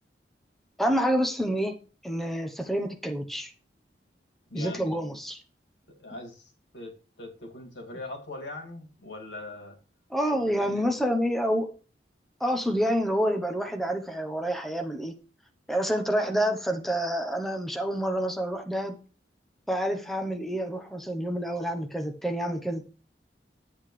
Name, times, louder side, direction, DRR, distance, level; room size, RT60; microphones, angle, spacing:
voice 1, 0.8-1.7 2.0-3.5 4.5-5.4 10.1-11.7 12.4-15.1 15.7-19.0 19.7-22.8, equal, ahead, 0.9 m, -28 dB
voice 2, 4.5-5.2 6.0-9.8 10.5-10.9, left 2 dB, 85° left, 2.4 m, -41 dB
11.0 x 8.0 x 3.2 m
head